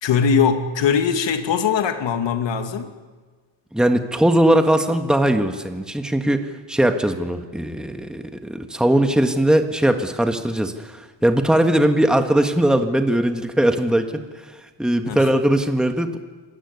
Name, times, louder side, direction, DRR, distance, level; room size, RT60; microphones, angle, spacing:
voice 1, 0.0-2.9 15.0-15.3, left 6 dB, 80° left, 6 dB, 2.5 m, -21 dB
voice 2, 3.7-14.4 14.8-16.2, right 1 dB, ahead, 6 dB, 1.6 m, -20 dB
26.5 x 17.0 x 9.6 m, 1.4 s
cardioid pair, 125°, 44 cm